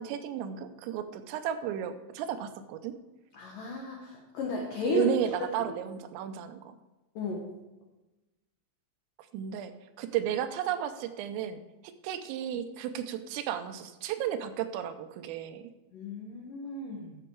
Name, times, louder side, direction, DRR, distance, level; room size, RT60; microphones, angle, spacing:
voice 1, 0.0-3.0 4.9-6.8 9.3-9.7 10.0-11.6 11.8-15.6, right 10 dB, 85° right, 9 dB, 3.3 m, -33 dB
voice 2, 3.3-5.1 7.2-7.5 15.9-17.2, left 3 dB, 85° left, 0 dB, 1.9 m, -34 dB
12.5 x 7.1 x 4.6 m, 1.1 s
omnidirectional pair, 5.9 m